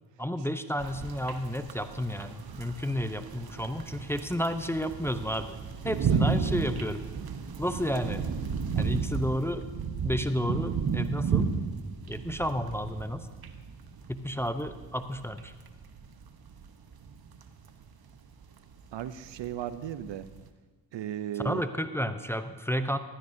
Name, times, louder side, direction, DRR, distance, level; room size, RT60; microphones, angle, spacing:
voice 1, 0.2-5.6 5.8-7.0 7.6-8.3 8.7-9.6 10.0-11.5 12.1-13.3 14.1-15.5 21.3-23.0, equal, 5° left, 9 dB, 0.6 m, -31 dB
sound 1, 0.8-20.5, right 6 dB, 50° right, 1.0 m, -33 dB
voice 2, 18.9-20.3 20.9-21.6, right 11 dB, 65° right, 14 dB, 0.6 m, -35 dB
15.0 x 12.0 x 2.7 m, 1.3 s
supercardioid pair, 50°, 47 cm